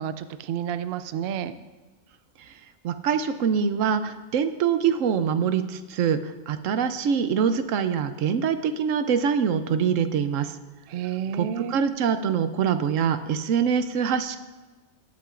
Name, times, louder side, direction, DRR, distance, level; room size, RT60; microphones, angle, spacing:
voice 1, 0.0-1.6 10.9-11.7, right 9 dB, 65° right, 12 dB, 0.7 m, -30 dB
voice 2, 2.8-10.5 11.4-14.4, right 7 dB, 80° right, 10 dB, 1.0 m, -24 dB
20.0 x 8.5 x 2.5 m, 1.3 s
omnidirectional pair, 1.3 m